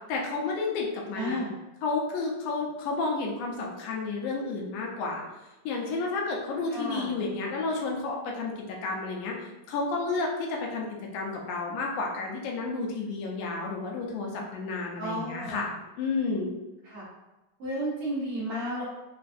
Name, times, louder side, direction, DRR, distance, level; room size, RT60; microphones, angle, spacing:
voice 1, 0.1-1.4 1.8-5.2 5.7-10.9 11.1-15.7 16.0-16.5, left 3 dB, 85° left, 0 dB, 2.0 m, -31 dB
voice 2, 1.2-1.5 6.7-7.1 15.0-15.6 16.8-17.0 17.6-18.8, equal, 70° right, -9 dB, 1.4 m, -32 dB
5.0 x 2.3 x 2.5 m, 1.0 s
omnidirectional pair, 3.6 m